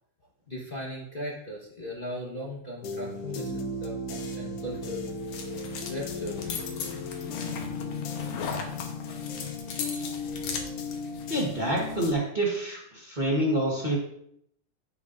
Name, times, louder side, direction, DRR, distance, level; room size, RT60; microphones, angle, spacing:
voice 1, 0.5-5.1 5.9-6.5, left 1 dB, 40° left, -5 dB, 0.7 m, -38 dB
sound 1, 2.8-12.1, left 3 dB, 65° left, 1.6 m, -35 dB
sound 2, 4.7-12.1, left 5 dB, 85° left, 2.5 m, -39 dB
voice 2, 11.3-14.0, right 1 dB, 35° right, -3 dB, 0.7 m, -27 dB
10.5 x 8.2 x 2.6 m, 0.71 s
omnidirectional pair, 3.3 m